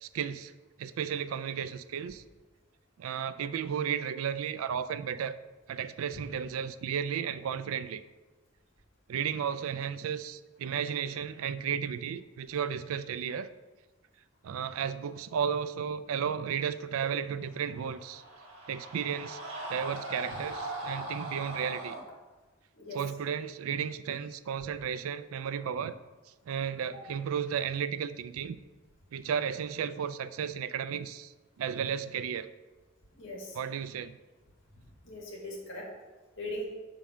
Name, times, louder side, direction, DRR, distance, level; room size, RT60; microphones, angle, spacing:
voice 1, 0.0-0.5 0.8-2.2 3.0-5.3 5.7-8.0 9.1-13.5 14.4-18.2 18.7-19.4 19.7-21.9 22.9-25.9 26.5-28.6 29.1-32.5 33.5-34.2, right 7 dB, 90° right, 13 dB, 0.4 m, -33 dB
sound 1, 17.6-22.0, right 1 dB, 70° right, 1.5 m, -40 dB
voice 2, 33.1-33.6 34.7-35.9 36.4-36.6, left 1 dB, 65° left, -3 dB, 1.9 m, -40 dB
6.2 x 3.8 x 5.6 m, 1.2 s
head